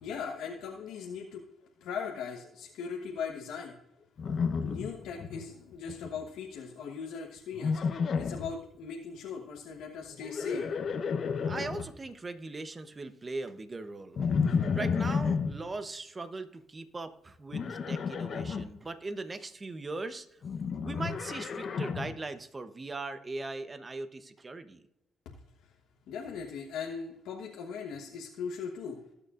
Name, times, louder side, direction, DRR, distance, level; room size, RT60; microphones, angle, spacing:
voice 1, 0.0-1.4 1.8-3.8 4.2-4.3 4.6-7.8 8.2-10.7 26.1-29.1, left 6 dB, 85° left, -1 dB, 1.2 m, -39 dB
Livestock farm animals working animals, 4.2-5.4 5.7-6.2 7.5-8.5 10.1-11.9 14.2-15.5 17.5-18.6 20.4-22.2, left 5 dB, 55° left, 0.9 m, -31 dB
voice 2, 11.4-14.2 14.5-20.4 20.8-24.9, right 3 dB, 25° right, 10 dB, 0.9 m, -40 dB
20.0 x 6.8 x 2.5 m, 0.84 s
cardioid pair, 90°, 0 cm